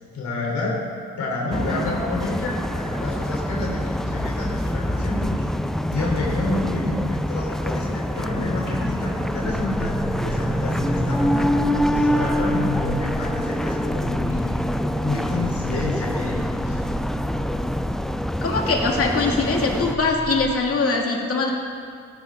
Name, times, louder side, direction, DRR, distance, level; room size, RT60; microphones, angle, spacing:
voice 1, 0.1-0.9 1.2-5.5 5.9-9.9 10.2-11.5 11.9-14.7 15.0-16.8, left 2 dB, 70° left, -3 dB, 3.6 m, -29 dB
sound 1, 1.5-20.0, equal, ahead, 0.4 m, -25 dB
sound 2, 9.4-20.5, left 1 dB, 20° left, 2.9 m, -33 dB
voice 2, 18.4-21.5, left 3 dB, 50° left, 0 dB, 2.2 m, -22 dB
17.0 x 10.5 x 3.7 m, 2.3 s
cardioid pair, 90°, 30 cm